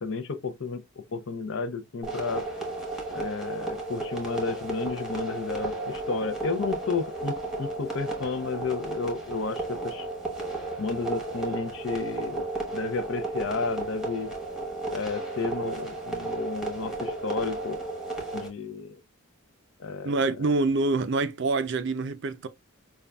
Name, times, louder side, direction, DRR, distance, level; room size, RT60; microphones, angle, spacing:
voice 1, 0.0-0.8 1.1-2.4 3.1-10.1 10.8-12.4 12.7-14.3 14.9-17.8 18.3-19.0 19.8-20.1 20.4-20.5, left 4 dB, 55° left, 0.5 m, -32 dB
sound 1, 2.0-18.5, right 2 dB, ahead, 1.0 m, -33 dB
voice 2, 20.0-22.5, right 3 dB, 50° right, 0.4 m, -26 dB
5.3 x 2.3 x 2.2 m
head